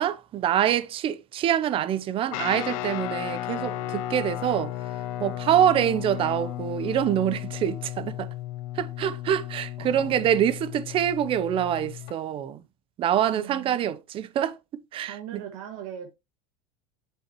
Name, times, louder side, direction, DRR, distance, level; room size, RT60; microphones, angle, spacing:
voice 1, 0.0-4.7 5.2-8.3 8.8-12.6 13.0-15.2, right 10 dB, 30° right, 0.6 m, -25 dB
Guitar, 2.3-12.1, left 14 dB, 65° left, 0.7 m, -34 dB
voice 2, 3.5-3.9 9.8-10.3 13.3-13.9 15.1-16.1, right 9 dB, 65° right, 1.8 m, -40 dB
7.1 x 6.9 x 3.0 m
supercardioid pair, 155°, 19 cm